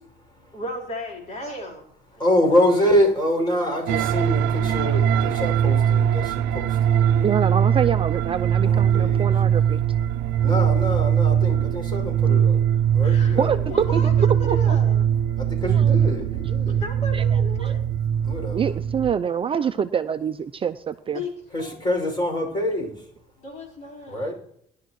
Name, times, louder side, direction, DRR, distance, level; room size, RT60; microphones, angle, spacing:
voice 1, 0.5-1.8 2.1-2.2 13.0-13.4 13.7-15.1 16.6-17.8 21.1-21.3 21.6-22.0 23.4-24.3, left 1 dB, 45° left, -1 dB, 4.5 m, -35 dB
voice 2, 2.2-7.4 8.6-9.3 10.4-12.6 12.9-13.7 15.4-16.8 18.2-18.7 21.5-23.1 24.1-24.3, left 1 dB, 25° left, 1 dB, 6.1 m, -25 dB
sound 1, 3.9-19.1, right 9 dB, 85° right, 0.5 m, -21 dB
voice 3, 7.2-9.8 13.4-13.6 13.9-14.0 14.4-14.8 15.7-16.0 17.1-17.2 17.6-17.7 18.5-21.2, right 7 dB, 30° right, 10 dB, 0.5 m, -26 dB
20.5 x 11.0 x 3.1 m, 0.71 s
cardioid pair, 110°, 17 cm